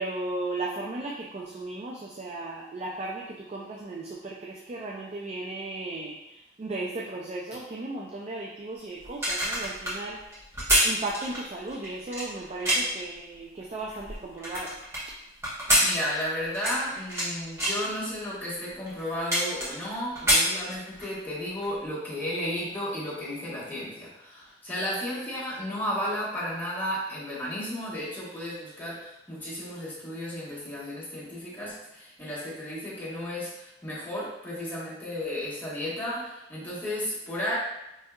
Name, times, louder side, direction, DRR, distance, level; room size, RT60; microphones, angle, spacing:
voice 1, 0.0-10.2 10.8-14.8, right 2 dB, 35° right, -3 dB, 0.4 m, -36 dB
sound 1, 9.0-13.0 13.6-15.0 15.4-17.3 17.6-17.9 18.5-18.6 18.9-19.9 20.1-21.1 21.5-21.7, equal, 15° right, 1.1 m, -26 dB
voice 2, 15.8-37.5, left 1 dB, 10° left, -9 dB, 1.2 m, -33 dB
4.6 x 2.7 x 2.2 m, 0.90 s
head